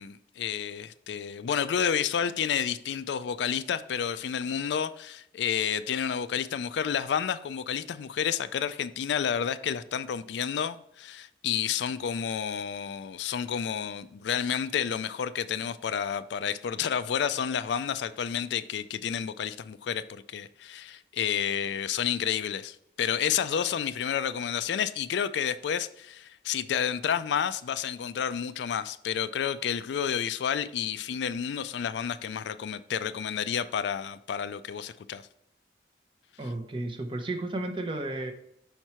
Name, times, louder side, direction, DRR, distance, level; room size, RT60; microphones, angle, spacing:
voice 1, 0.0-35.2, left 8 dB, 75° left, 0.3 m, -30 dB
voice 2, 36.4-38.3, right 2 dB, 30° right, 0.7 m, -33 dB
5.7 x 4.5 x 4.3 m
head